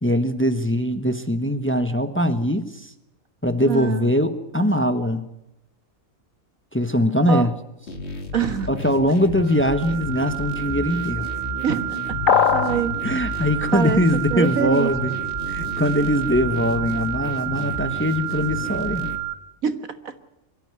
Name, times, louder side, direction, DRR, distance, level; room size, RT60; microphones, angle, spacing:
voice 1, 0.0-2.9 3.4-5.2 6.7-7.5 8.7-11.3 13.0-15.2 15.5-19.1, equal, 10° left, 9 dB, 1.2 m, -22 dB
voice 2, 3.6-4.1 7.3-7.5 8.3-8.7 11.6-13.0 13.3-14.0 14.3-14.9 19.6-19.8 20.0-20.1, right 7 dB, 85° right, 10 dB, 2.0 m, -25 dB
sound 1, 7.9-19.2, left 3 dB, 50° left, 2.3 m, -32 dB
sound 2, 9.4-19.3, right 18 dB, 50° right, 1.9 m, -30 dB
sound 3, 12.3-12.8, left 7 dB, 75° left, 1.5 m, -18 dB
24.0 x 13.0 x 9.7 m, 0.86 s
omnidirectional pair, 1.4 m